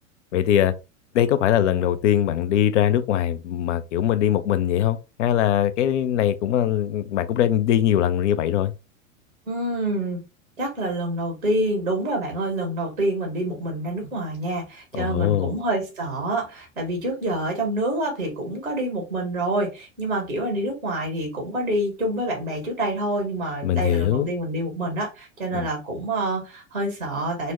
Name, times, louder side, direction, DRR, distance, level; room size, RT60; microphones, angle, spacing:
voice 1, 0.3-0.7 1.1-8.7 15.0-15.5 23.6-24.3 25.5-25.7, left 10 dB, 60° left, 0.6 m, -21 dB
voice 2, 9.5-10.2 10.6-27.5, right 1 dB, 90° right, 1.4 m, -27 dB
4.0 x 2.1 x 3.1 m
figure-of-eight pair, 90°, 41 cm